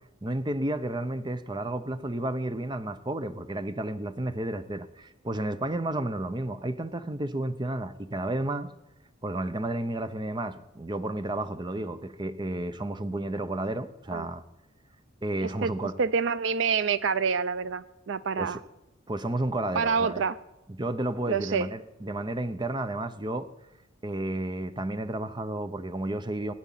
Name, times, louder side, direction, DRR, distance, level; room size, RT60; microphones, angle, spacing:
voice 1, 0.2-8.7 9.2-14.4 15.2-16.0 18.4-18.6 19.1-20.2 20.7-23.5 24.0-26.5, right 1 dB, 20° right, 0.7 m, -32 dB
voice 2, 15.4-15.7 16.0-18.6 19.7-20.4 21.3-21.7, right 5 dB, 65° right, 0.5 m, -27 dB
18.5 x 9.6 x 7.3 m
head